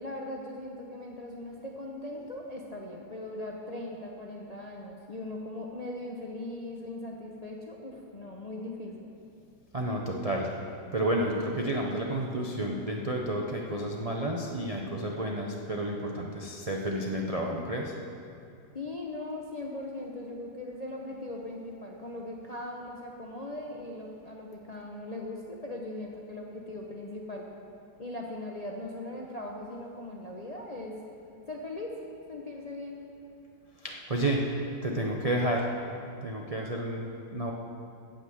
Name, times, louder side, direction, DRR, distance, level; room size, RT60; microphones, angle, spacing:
voice 1, 0.0-9.1 18.7-27.5 28.0-31.0 31.5-31.9 32.3-33.0, left 2 dB, 45° left, -1 dB, 0.5 m, -39 dB
voice 2, 9.7-10.5 10.9-17.9 33.8-34.4 34.8-35.7 36.2-37.5, right 1 dB, 55° right, -1 dB, 0.4 m, -31 dB
8.9 x 8.0 x 7.8 m, 2.6 s
omnidirectional pair, 1.9 m